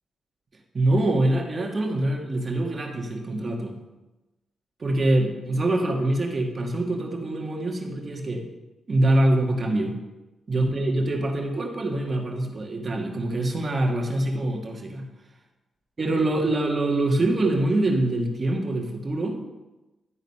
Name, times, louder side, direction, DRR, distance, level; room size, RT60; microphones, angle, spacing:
voice 1, 0.7-3.8 4.8-8.5 8.9-10.0 10.5-15.1 16.0-19.4, right 1 dB, 40° right, 2 dB, 1.6 m, -24 dB
11.0 x 4.0 x 5.4 m, 1.1 s
cardioid pair, 75°, 0 cm